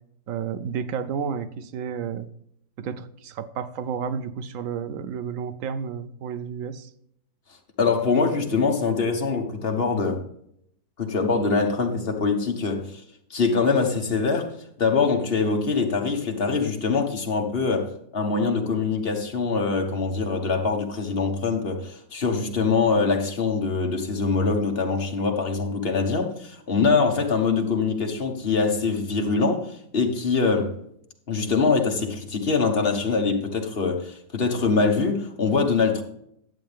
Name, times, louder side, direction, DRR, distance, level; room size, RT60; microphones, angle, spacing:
voice 1, 0.3-2.3 2.8-6.9, right 7 dB, 65° right, 0.8 m, -31 dB
voice 2, 7.8-10.2 11.0-13.0 13.3-14.5 14.8-30.8 31.3-36.0, left 4 dB, 35° left, 1.3 m, -23 dB
11.0 x 7.6 x 3.4 m
omnidirectional pair, 1.9 m